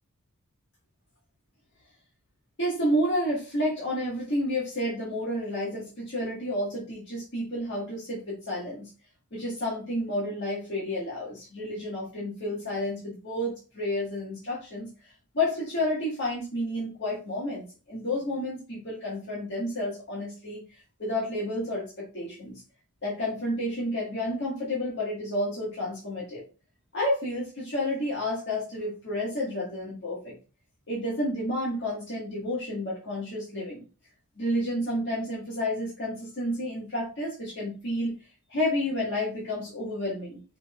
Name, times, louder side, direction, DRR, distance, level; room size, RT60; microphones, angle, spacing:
voice 1, 2.6-8.9 9.3-14.9 15.3-20.6 21.0-22.6 23.0-26.4 26.9-30.4 30.9-33.8 34.4-38.1 38.5-40.4, left 1 dB, 55° left, -5 dB, 1.7 m, -30 dB
5.6 x 3.5 x 2.4 m, 0.32 s
head